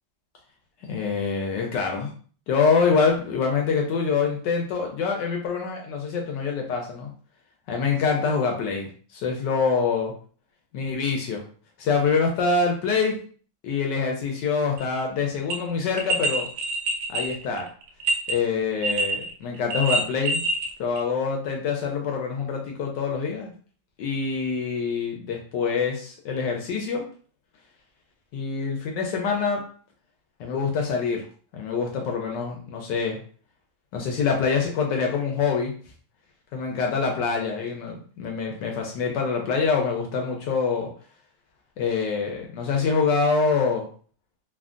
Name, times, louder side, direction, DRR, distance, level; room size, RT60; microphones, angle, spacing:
voice 1, 0.9-2.1 2.5-7.1 7.7-10.1 10.7-11.4 11.8-13.2 13.6-16.5 17.1-17.7 18.3-20.4 20.8-23.5 24.0-27.0 28.3-29.6 30.4-31.3 31.5-33.2 33.9-35.7 36.5-40.9 41.8-43.9, left 5 dB, 75° left, 1 dB, 1.0 m, -25 dB
sound 1, 14.8-14.9 15.5-15.6 16.0-18.3 18.8-19.3 19.6-20.7 21.0-21.1, right 2 dB, 70° right, 1.1 m, -25 dB
3.4 x 2.1 x 2.4 m, 0.43 s
omnidirectional pair, 2.3 m